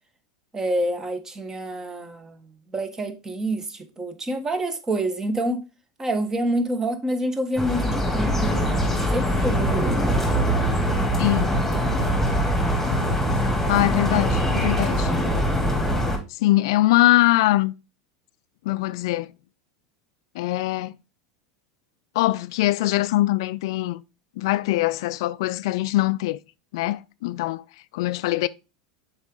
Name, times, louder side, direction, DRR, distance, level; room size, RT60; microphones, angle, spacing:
voice 1, 0.5-2.4 2.7-5.6 6.0-10.6, right 1 dB, 20° right, 1.3 m, -27 dB
sound 1, 7.6-16.2, equal, 5° left, 2.6 m, -22 dB
voice 2, 11.2-11.6 13.7-15.1 16.3-17.7 18.7-19.3 20.4-20.9 22.2-24.0 24.4-26.4 26.7-27.6 27.9-28.5, left 17 dB, 65° left, 0.3 m, -22 dB
7.0 x 4.9 x 3.8 m
hypercardioid pair, 90°, 3 cm